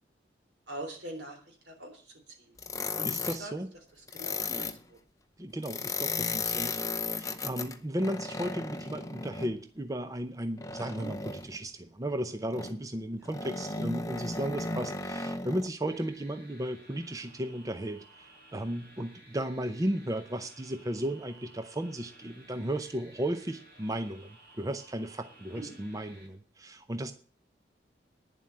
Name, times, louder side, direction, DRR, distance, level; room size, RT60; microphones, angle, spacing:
voice 1, 0.7-2.0 3.0-3.5 4.1-5.0 10.8-11.1 13.2-13.3 25.5-25.8, right 1 dB, 75° right, 3 dB, 3.6 m, -43 dB
sound 1, 2.6-3.4 4.1-4.8 5.6-9.5 10.6-11.6 12.5-12.8 13.3-15.7, left 4 dB, 20° left, 0.7 m, -35 dB
voice 2, 3.0-3.7 5.4-27.1, right 1 dB, 20° right, 9 dB, 0.6 m, -35 dB
sound 2, 15.9-26.3, right 1 dB, 60° right, 6.0 m, -56 dB
9.9 x 7.5 x 8.5 m, 0.43 s
head